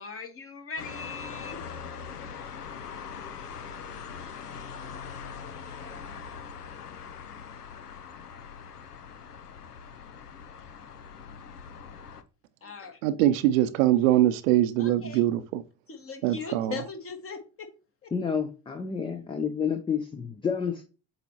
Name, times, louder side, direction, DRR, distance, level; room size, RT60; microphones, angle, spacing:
voice 1, 0.0-1.6 12.6-13.0 14.8-15.2 15.9-17.7 18.0-18.1, left 4 dB, 30° left, 1.5 m, -39 dB
sound 1, 0.8-12.2, left 6 dB, 90° left, 0.6 m, -42 dB
voice 2, 13.0-15.6 16.2-16.7, right 13 dB, 65° right, 0.7 m, -23 dB
voice 3, 18.1-20.9, left 6 dB, 10° left, 0.5 m, -30 dB
7.8 x 4.3 x 2.9 m
figure-of-eight pair, 65°, 45 cm